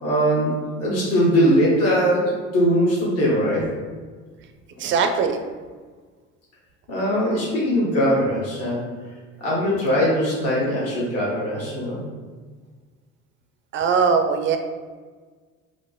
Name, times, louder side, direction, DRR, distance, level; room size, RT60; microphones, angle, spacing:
voice 1, 0.0-3.7 6.9-8.8 9.4-12.0, equal, 40° left, -5 dB, 1.2 m, -21 dB
voice 2, 4.8-5.4 13.7-14.6, right 5 dB, 35° right, 6 dB, 0.4 m, -20 dB
4.8 x 2.0 x 2.2 m, 1.5 s
hypercardioid pair, 70°, 37 cm